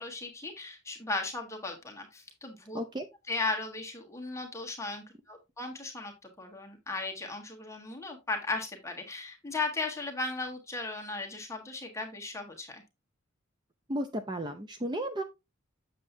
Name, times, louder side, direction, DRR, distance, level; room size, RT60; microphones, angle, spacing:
voice 1, 0.0-2.8 3.3-12.8, left 3 dB, 15° left, 1 dB, 1.3 m, -36 dB
voice 2, 2.7-3.1 13.9-15.2, right 1 dB, 20° right, 8 dB, 0.5 m, -33 dB
7.4 x 7.0 x 2.7 m, 0.24 s
head